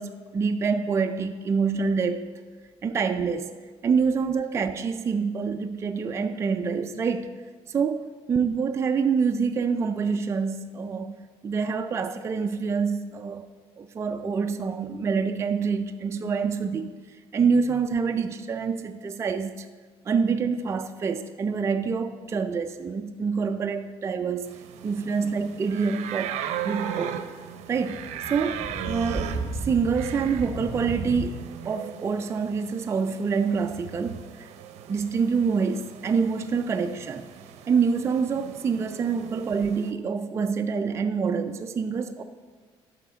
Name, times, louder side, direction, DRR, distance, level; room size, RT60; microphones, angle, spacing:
voice 1, 0.0-2.3 2.8-3.5 3.8-7.3 7.7-11.2 11.4-13.5 13.8-16.9 17.3-19.7 20.1-24.6 24.8-26.4 26.6-27.2 27.7-28.0 28.3-31.4 31.7-34.5 34.9-37.2 37.7-42.2, right 5 dB, 25° right, 7 dB, 0.4 m, -26 dB
sound 1, 24.5-39.9, right 9 dB, 85° right, 0.6 m, -38 dB
sound 2, 27.7-31.3, right 2 dB, ahead, 0.9 m, -34 dB
8.3 x 5.0 x 6.7 m, 1.5 s
cardioid pair, 135°, 11 cm